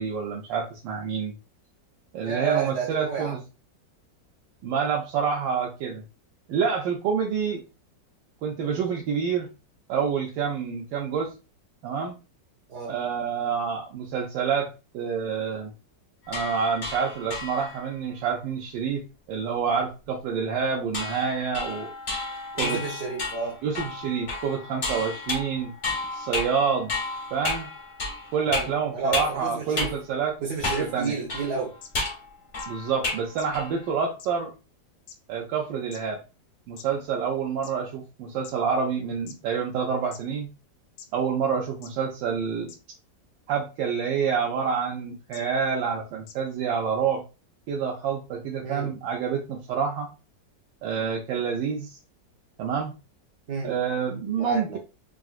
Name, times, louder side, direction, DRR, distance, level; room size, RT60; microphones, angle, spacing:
voice 1, 0.0-1.4 2.1-3.4 4.6-6.0 6.5-7.6 8.4-9.5 9.9-11.3 11.8-12.2 12.9-15.7 16.3-19.0 19.3-21.9 22.5-22.8 23.6-25.7 26.1-26.9 27.3-27.7 28.3-30.3 30.6-31.2 32.7-34.5 35.3-36.2 36.7-40.5 41.1-42.7 43.5-47.2 47.7-50.1 50.8-52.0 52.6-52.9 53.6-54.8, right 6 dB, 90° right, 1.3 m, -27 dB
voice 2, 2.2-3.4 12.7-13.0 22.5-23.6 28.5-29.9 30.4-31.7 48.6-48.9 53.5-53.7 54.4-54.8, right 5 dB, 60° right, 0.8 m, -31 dB
sound 1, 16.3-17.9 20.9-29.4 29.8-30.0 30.6-31.0 31.3-33.3 33.5-33.9, left 2 dB, 45° left, 0.6 m, -32 dB
sound 2, 31.0-31.1 31.8-31.9 32.6-32.7 33.4-33.5 34.2-34.3 35.1-35.2 35.9-36.0 36.8-36.9 37.6-37.7 38.4-38.5 39.3-39.4 40.1-40.2 41.0-41.1 41.8-41.9 42.7-42.8 44.0-44.2 45.3-45.4 46.3-46.4, left 7 dB, 85° left, 0.7 m, -44 dB
3.8 x 2.4 x 2.4 m
omnidirectional pair, 1.9 m